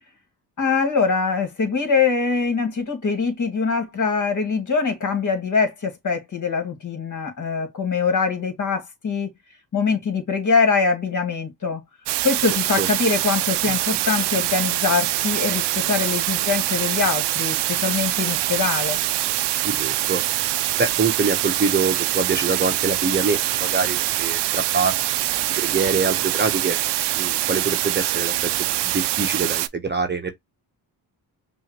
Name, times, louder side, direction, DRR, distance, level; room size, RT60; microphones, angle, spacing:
voice 1, 0.6-9.3 9.7-11.8 12.2-19.0, left 5 dB, 45° left, 2.0 m, -23 dB
sound 1, 12.1-29.7, right 15 dB, 85° right, 0.5 m, -24 dB
voice 2, 19.6-24.9 25.6-26.8 27.2-28.5 28.8-30.3, right 4 dB, 25° right, 0.8 m, -25 dB
5.6 x 2.6 x 2.9 m
cardioid pair, 90°, 41 cm